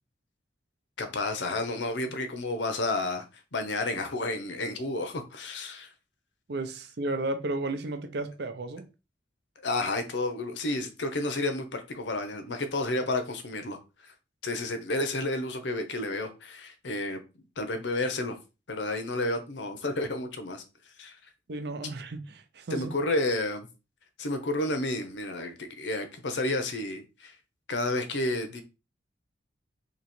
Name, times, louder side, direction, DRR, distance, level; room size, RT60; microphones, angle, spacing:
voice 1, 1.0-3.2 3.5-5.9 9.6-14.1 14.4-17.2 17.6-18.4 18.7-20.6 21.0-21.2 22.7-23.7 24.2-27.4 27.7-28.6, left 2 dB, 85° left, 0.8 m, -31 dB
voice 2, 6.5-8.9 21.5-22.9, right 2 dB, 65° right, 0.6 m, -33 dB
3.1 x 2.9 x 4.2 m
head